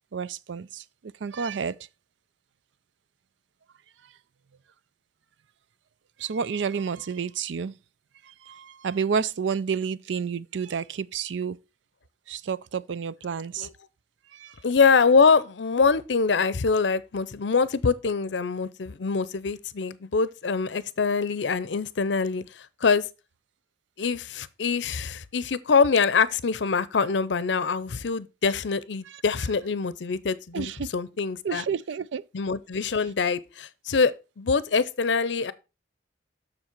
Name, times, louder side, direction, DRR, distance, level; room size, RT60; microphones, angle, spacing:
voice 1, 0.1-1.8 6.2-7.7 8.3-11.6 12.3-13.7 14.3-14.5 29.1-29.2 30.5-30.9 31.4-32.2, right 6 dB, 90° right, 0.4 m, -30 dB
voice 2, 14.6-23.0 24.0-31.6 32.3-35.5, left 5 dB, 80° left, 0.6 m, -24 dB
7.3 x 6.5 x 4.4 m
head